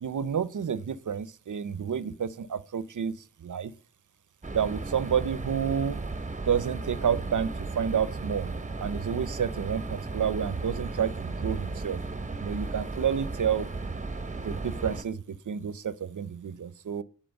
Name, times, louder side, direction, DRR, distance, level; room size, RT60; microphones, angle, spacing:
voice 1, 0.0-3.1 3.4-3.7 4.5-6.0 6.5-8.5 8.8-12.0 12.4-13.7 14.4-17.0, right 7 dB, 65° right, 0.7 m, -30 dB
sound 1, 4.4-15.0, right 3 dB, 20° right, 1.0 m, -35 dB
10.5 x 4.3 x 5.3 m
wide cardioid pair, 80°, 33 cm